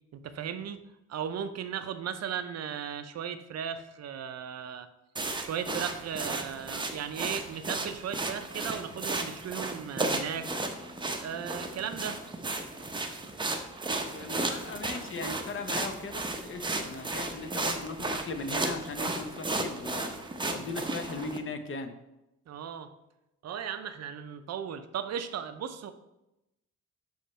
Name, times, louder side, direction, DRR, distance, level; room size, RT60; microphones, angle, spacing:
voice 1, 0.1-0.8 1.1-4.9 5.4-12.2 22.5-22.9 23.4-25.9, right 8 dB, 55° right, 10 dB, 0.6 m, -36 dB
sound 1, 5.2-21.4, right 2 dB, 15° right, 0.7 m, -34 dB
voice 2, 14.1-20.1 20.4-21.9, left 3 dB, 40° left, 8 dB, 0.7 m, -38 dB
7.2 x 3.2 x 4.3 m, 0.91 s
cardioid pair, 90°, 31 cm